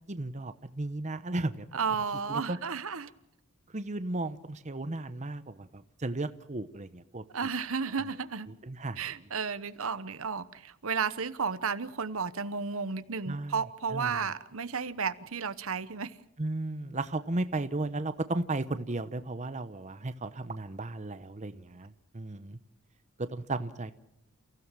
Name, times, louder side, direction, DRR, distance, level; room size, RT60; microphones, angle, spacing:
voice 1, 0.1-1.7 2.3-2.6 3.7-7.2 8.6-9.0 13.3-13.6 13.9-14.2 16.4-22.6 23.2-23.9, right 2 dB, 30° right, 0.9 m, -35 dB
voice 2, 1.7-3.1 7.3-8.5 9.0-16.2, right 5 dB, 65° right, 1.0 m, -33 dB
29.5 x 16.0 x 7.5 m
head